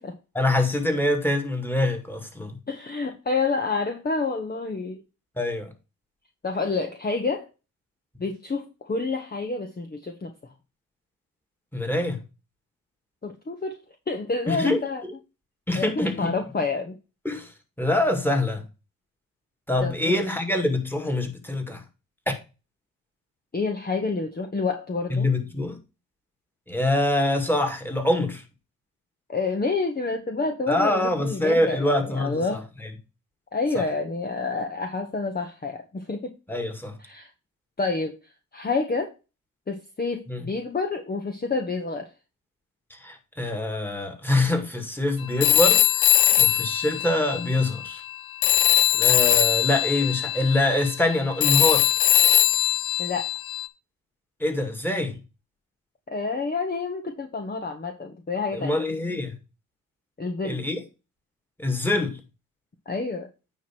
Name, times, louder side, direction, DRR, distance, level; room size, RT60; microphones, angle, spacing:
voice 1, 0.4-2.6 5.4-5.7 11.7-12.2 14.5-14.8 15.7-16.3 17.2-17.5 17.8-18.6 19.7-21.8 22.3-22.4 25.1-25.8 26.7-28.4 30.7-32.6 33.7-33.9 36.5-36.9 40.3-40.5 42.9-48.0 48.9-51.9 54.4-55.2 58.5-59.4 60.4-60.8 61.6-62.2, left 1 dB, 5° left, 2.1 m, -25 dB
voice 2, 2.7-5.0 6.4-7.5 8.2-10.3 13.2-13.8 14.1-15.0 15.7-17.0 19.8-20.2 23.5-25.3 29.3-32.6 33.5-36.3 37.0-37.3 37.8-38.2 38.5-39.1 39.7-42.1 46.3-46.4 53.0-53.3 56.1-58.8 60.2-60.6 62.9-63.3, left 3 dB, 25° left, 1.1 m, -28 dB
Telephone, 45.4-48.1 48.4-53.7, left 13 dB, 85° left, 0.6 m, -21 dB
9.2 x 3.1 x 5.9 m
cardioid pair, 70°, 36 cm